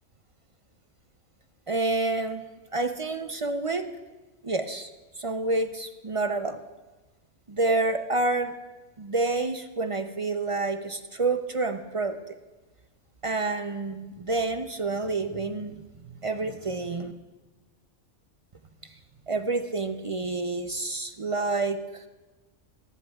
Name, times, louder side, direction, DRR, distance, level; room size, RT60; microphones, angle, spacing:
voice 1, 1.7-2.5 2.7-3.9 4.4-4.9 5.2-6.6 7.5-8.5 9.0-12.2 13.2-15.8 16.1-17.1 19.3-21.8, right 3 dB, 35° right, 7 dB, 0.5 m, -28 dB
23.0 x 19.0 x 2.4 m, 1.2 s
omnidirectional pair, 1.3 m